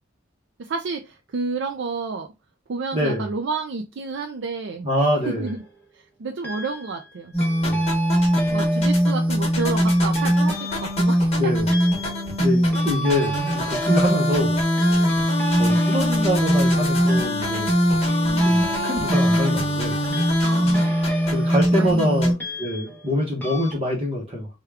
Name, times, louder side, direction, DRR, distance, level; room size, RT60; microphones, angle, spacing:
voice 1, 0.6-2.3 2.7-4.9 5.3-5.6 5.9-7.3 8.5-11.5 18.2-18.7 20.4-20.9 21.8-22.4, right 4 dB, 60° right, 0.4 m, -30 dB
voice 2, 2.9-3.3 4.8-5.5 7.6-7.9 11.4-11.7 12.4-14.6 15.6-17.7 18.4-20.0 21.3-22.3 22.6-24.5, equal, 30° right, 0.8 m, -25 dB
sound 1, 5.4-5.7 6.4-7.1 7.4-23.1 23.4-23.7, right 1 dB, 10° left, 0.8 m, -34 dB
sound 2, 7.3-22.3, equal, 30° left, 1.1 m, -21 dB
3.5 x 2.3 x 3.2 m
head